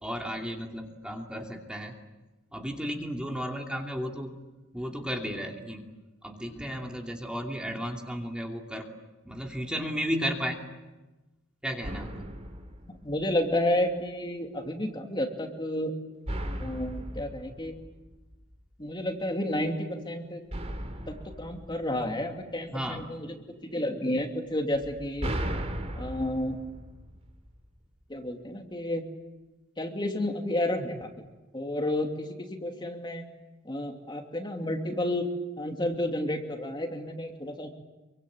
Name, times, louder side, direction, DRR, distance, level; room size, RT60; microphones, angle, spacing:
voice 1, 0.0-1.9 2.5-4.3 4.7-5.9 6.2-8.9 9.2-10.6 11.6-12.3 22.7-23.1, equal, 5° right, 1 dB, 2.7 m, -34 dB
sound 1, 11.8-13.7 16.3-18.7 20.5-22.8 24.7-27.8, right 1 dB, 35° right, 3.1 m, -37 dB
voice 2, 13.0-15.9 16.6-17.8 18.8-20.4 21.1-23.4 23.6-25.3 26.0-26.6 28.1-29.0 29.8-31.1 31.5-33.3 33.6-35.3 35.6-37.7, left 1 dB, 25° left, 3 dB, 2.8 m, -31 dB
27.5 x 24.5 x 8.8 m, 1.1 s
head